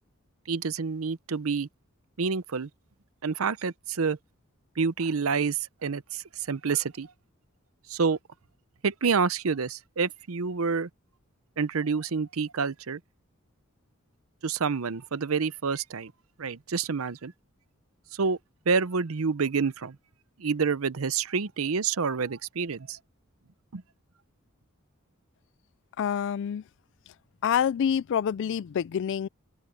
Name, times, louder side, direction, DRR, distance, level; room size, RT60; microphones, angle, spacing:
voice 1, 0.5-1.7 2.2-2.7 3.2-4.2 4.8-7.1 7.9-8.2 8.8-10.9 11.6-13.0 14.4-16.1 16.4-17.3 18.1-18.4 18.7-20.0 20.4-23.0 23.7-23.8, right 5 dB, 75° right, 0.7 m, -28 dB
voice 2, 26.0-26.6 27.4-29.3, left 8 dB, 60° left, 0.3 m, -27 dB
open air
head